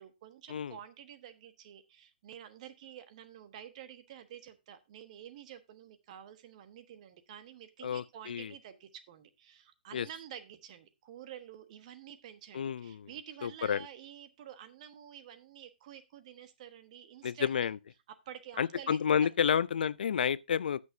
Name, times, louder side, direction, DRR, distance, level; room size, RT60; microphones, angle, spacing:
voice 1, 0.0-17.7 18.1-19.6, right 10 dB, 40° right, 1.2 m, -50 dB
voice 2, 7.8-8.5 9.9-10.1 12.5-13.1 13.4-13.9 17.2-17.8 18.6-20.8, left 7 dB, 65° left, 0.5 m, -30 dB
15.0 x 6.4 x 2.6 m
hypercardioid pair, 135°, 5 cm